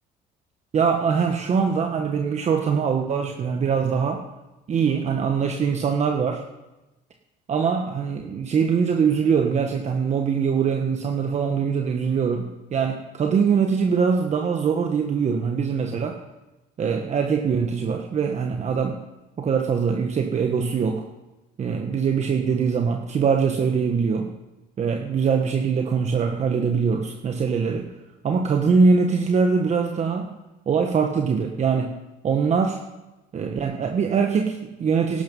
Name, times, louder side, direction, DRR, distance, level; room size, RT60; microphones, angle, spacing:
voice 1, 0.7-4.2 4.7-6.4 7.5-16.2 16.8-19.0 19.4-21.0 21.6-24.3 24.8-27.9 28.2-30.3 30.7-31.9 32.2-32.8 33.3-35.2, right 6 dB, 40° right, 3 dB, 1.3 m, -22 dB
17.5 x 12.0 x 5.4 m, 1.0 s
cardioid pair, 110°, 17 cm